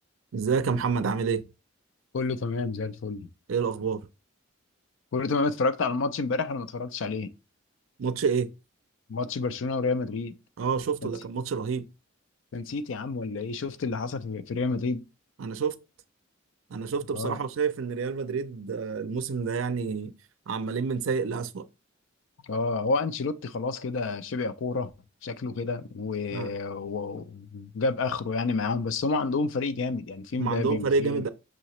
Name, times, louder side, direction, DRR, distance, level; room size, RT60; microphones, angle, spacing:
voice 1, 0.3-1.4 3.5-4.1 8.0-8.5 10.6-11.9 15.4-15.8 16.7-20.1 20.5-21.7 26.3-26.5 30.4-31.3, right 5 dB, 75° right, 0.4 m, -28 dB
voice 2, 2.1-3.3 5.1-7.3 9.1-10.3 11.0-11.1 12.5-15.0 17.1-17.4 22.4-24.9 25.2-31.3, left 3 dB, 70° left, 0.4 m, -29 dB
6.1 x 2.8 x 3.0 m
head